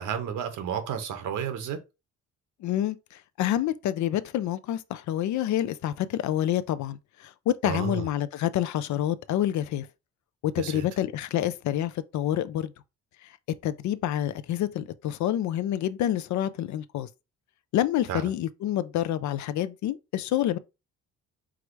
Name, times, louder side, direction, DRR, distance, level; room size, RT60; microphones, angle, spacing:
voice 1, 0.0-1.8 7.6-8.1 10.6-10.8 18.1-18.3, right 8 dB, 80° right, 1.1 m, -31 dB
voice 2, 2.6-9.9 10.4-12.7 13.2-13.3 13.6-17.1 17.7-20.6, left 12 dB, 70° left, 0.5 m, -28 dB
4.8 x 2.1 x 4.6 m
cardioid pair, 90°, 30 cm